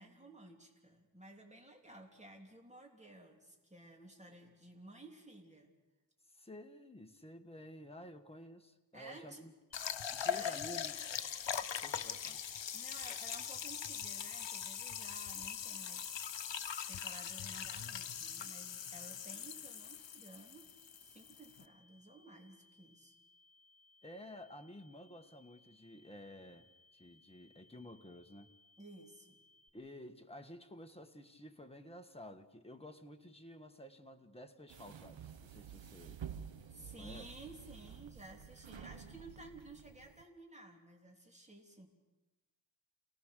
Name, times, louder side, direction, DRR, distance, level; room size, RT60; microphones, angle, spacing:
voice 1, 0.0-5.7 8.9-9.4 10.2-10.6 12.7-16.5 16.9-20.7 21.0-23.1 28.8-29.4 36.7-41.9, right 2 dB, 15° right, 2 dB, 3.3 m, -55 dB
voice 2, 6.3-9.5 10.1-10.9 11.7-12.4 24.0-28.5 29.7-36.2 36.7-37.3, equal, 15° left, 5 dB, 1.6 m, -52 dB
sound 1, 9.7-21.6, left 8 dB, 75° left, 0.9 m, -41 dB
sound 2, 9.7-29.7, left 2 dB, 60° left, 2.9 m, -68 dB
sound 3, 34.7-40.2, right 8 dB, 85° right, 1.1 m, -50 dB
28.5 x 18.0 x 6.7 m, 1.1 s
wide cardioid pair, 75°, 44 cm